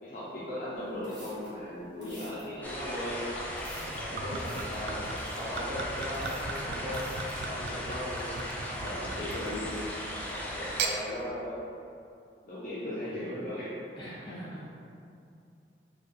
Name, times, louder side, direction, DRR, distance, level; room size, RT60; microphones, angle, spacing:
voice 1, 0.0-3.3 4.0-7.1 7.4-10.0 10.3-11.6 12.4-13.7, left 1 dB, 50° left, -10 dB, 0.6 m, -38 dB
sound 1, 0.8-7.4, right 1 dB, 25° right, 1.0 m, -53 dB
sound 2, 2.6-11.0, left 1 dB, 10° left, 0.4 m, -37 dB
Gurgling / Chink clink / Liquid, 3.8-9.9 10.6-11.0, right 4 dB, 65° right, 0.3 m, -38 dB
voice 2, 4.3-4.8 13.0-13.4 14.0-14.6, equal, 25° left, -10 dB, 1.0 m, -44 dB
4.3 x 2.4 x 3.1 m, 2.5 s
head